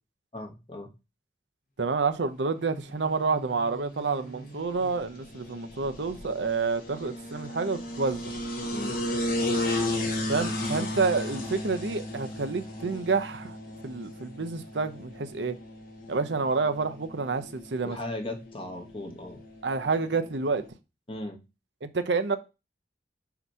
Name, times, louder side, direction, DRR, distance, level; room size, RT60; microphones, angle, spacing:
voice 1, 0.3-0.9 8.7-8.9 17.8-19.4 21.1-21.4, left 1 dB, 30° left, 1.1 m, -37 dB
voice 2, 1.8-8.3 10.3-13.6 13.8-15.6 16.1-18.0 19.6-20.6 21.8-22.4, right 4 dB, 80° right, 0.7 m, -28 dB
sound 1, 2.6-20.7, left 1 dB, 55° left, 1.3 m, -35 dB
5.8 x 2.9 x 5.5 m
head